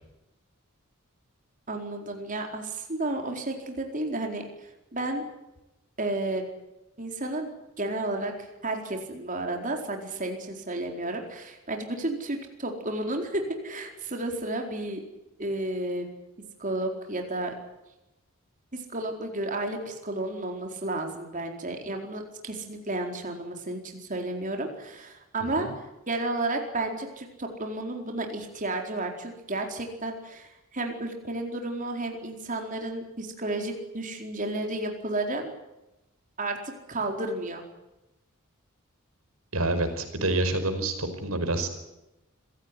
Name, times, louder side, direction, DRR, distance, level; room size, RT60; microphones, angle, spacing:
voice 1, 1.7-5.2 6.0-6.4 7.0-7.5 7.8-15.0 15.4-16.1 16.6-17.5 18.7-35.5 36.4-37.6, right 2 dB, 35° right, 3 dB, 4.4 m, -32 dB
voice 2, 39.5-41.7, right 2 dB, 80° right, 8 dB, 5.2 m, -27 dB
26.5 x 17.0 x 9.8 m, 0.95 s
head